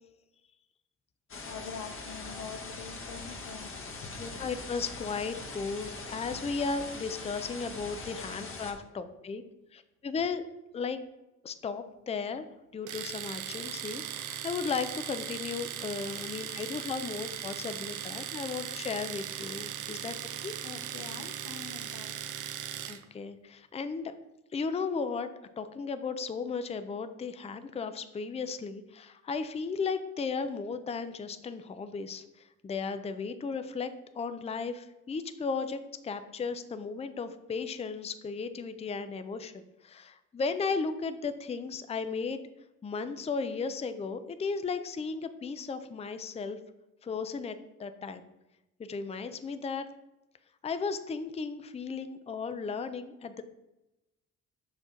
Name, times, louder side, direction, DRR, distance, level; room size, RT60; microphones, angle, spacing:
sound 1, 1.3-8.7, left 3 dB, 45° left, 1.3 m, -42 dB
voice 1, 1.4-3.7 20.6-22.1, left 6 dB, 85° left, 7 dB, 0.9 m, -44 dB
voice 2, 4.2-9.4 9.7-10.4 10.7-11.0 11.4-12.5 12.7-20.1 20.4-20.5 22.9-24.1 24.5-25.3 25.6-42.4 42.8-46.6 47.0-48.2 48.8-49.9 50.6-53.4, left 5 dB, 20° left, 10 dB, 0.5 m, -35 dB
Domestic sounds home sounds, 12.9-23.0, right 10 dB, 80° right, 0.7 m, -38 dB
6.1 x 5.2 x 3.7 m, 0.95 s
cardioid pair, 90°, 30 cm